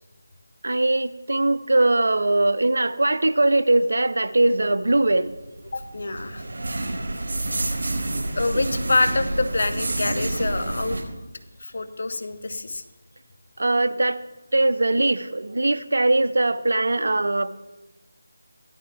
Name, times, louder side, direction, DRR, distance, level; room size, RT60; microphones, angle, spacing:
voice 1, 0.6-5.3 13.6-14.2 14.5-17.5, right 2 dB, 70° right, 12 dB, 0.7 m, -21 dB
sound 1, 5.1-11.0, right 2 dB, 50° right, 4.0 m, -28 dB
voice 2, 5.7-6.4 8.3-11.0 11.6-12.8, left 3 dB, 60° left, 9 dB, 1.0 m, -26 dB
15.0 x 12.0 x 3.4 m, 1.1 s
figure-of-eight pair, 160°, 0 cm